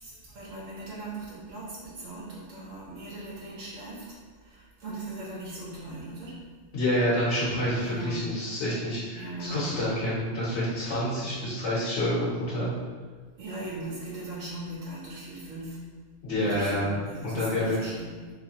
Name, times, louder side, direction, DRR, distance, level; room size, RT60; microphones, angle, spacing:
voice 1, 0.0-4.0 4.4-6.4 7.8-8.2 9.1-9.6 13.4-15.8 16.4-18.2, right 2 dB, 85° right, -6 dB, 1.3 m, -39 dB
voice 2, 6.7-12.7 16.2-16.9 17.2-17.8, left 1 dB, 70° left, -9 dB, 1.2 m, -28 dB
3.3 x 3.1 x 2.8 m, 1.5 s
omnidirectional pair, 1.3 m